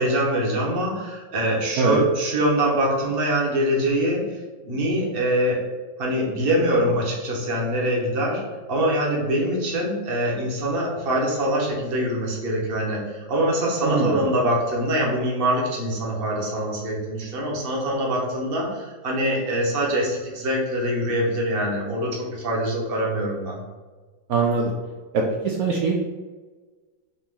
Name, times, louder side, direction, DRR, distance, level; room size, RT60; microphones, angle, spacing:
voice 1, 0.0-4.4 4.6-5.7 6.0-23.6, right 1 dB, 40° right, -3 dB, 0.9 m, -24 dB
voice 2, 13.8-14.2 24.3-24.7 25.1-26.0, right 4 dB, 75° right, -1 dB, 0.8 m, -22 dB
4.1 x 2.9 x 3.6 m, 1.4 s
omnidirectional pair, 2.1 m